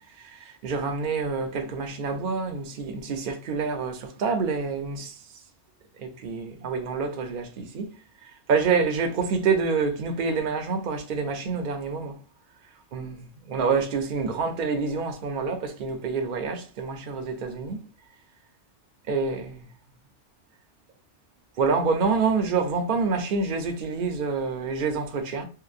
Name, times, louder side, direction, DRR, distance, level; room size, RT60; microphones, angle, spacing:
voice 1, 0.2-5.1 6.0-7.9 8.5-12.1 12.9-13.2 13.5-17.8 19.1-19.6 21.6-25.5, right 4 dB, 55° right, 0.6 m, -27 dB
2.9 x 2.1 x 2.4 m
omnidirectional pair, 1.2 m